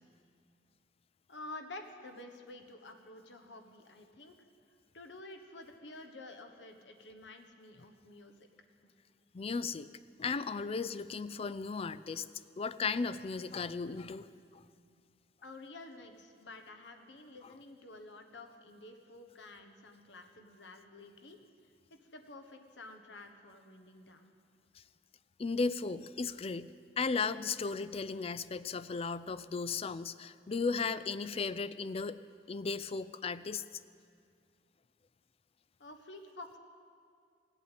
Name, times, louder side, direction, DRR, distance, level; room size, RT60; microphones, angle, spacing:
voice 1, 1.3-4.4 4.9-8.3 15.4-21.4 21.9-24.3 35.8-36.6, left 2 dB, 80° left, 6 dB, 1.3 m, -50 dB
voice 2, 9.3-9.9 10.2-12.3 12.6-14.3 14.5-14.6 25.4-32.2 32.5-33.6, left 4 dB, 35° left, 15 dB, 0.4 m, -35 dB
16.0 x 8.5 x 9.1 m, 2.2 s
head